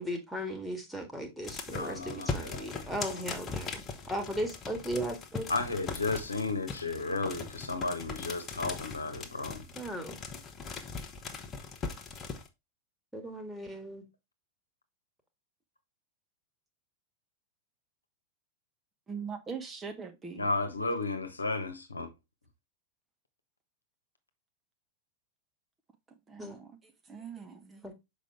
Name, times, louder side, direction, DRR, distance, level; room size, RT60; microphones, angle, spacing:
voice 1, 0.0-5.5 9.8-10.2 13.1-14.0 26.4-26.6 27.8-27.9, equal, ahead, 1.8 m, -37 dB
sound 1, 1.4-12.5, left 4 dB, 25° left, 1.1 m, -40 dB
voice 2, 1.7-2.9 5.5-9.6 20.4-22.1, left 3 dB, 80° left, 1.1 m, -33 dB
voice 3, 19.1-20.5 26.3-26.7 27.1-27.8, right 6 dB, 20° right, 1.1 m, -41 dB
6.5 x 5.1 x 3.3 m
figure-of-eight pair, 90°, 0 cm